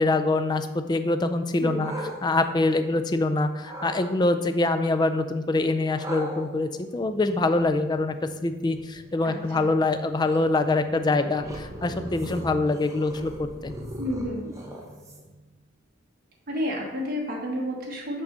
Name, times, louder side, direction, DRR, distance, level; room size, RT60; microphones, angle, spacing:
voice 1, 0.0-1.9 2.2-8.1 8.4-13.7, left 2 dB, 20° left, 9 dB, 0.3 m, -24 dB
sound 1, 1.5-3.2 3.6-4.1 6.0-15.4, right 1 dB, 15° right, 0.8 m, -40 dB
voice 2, 1.6-1.9 9.2-9.6 14.0-14.6 16.5-18.2, equal, 45° right, -1 dB, 1.3 m, -31 dB
5.9 x 5.4 x 3.8 m, 1.1 s
head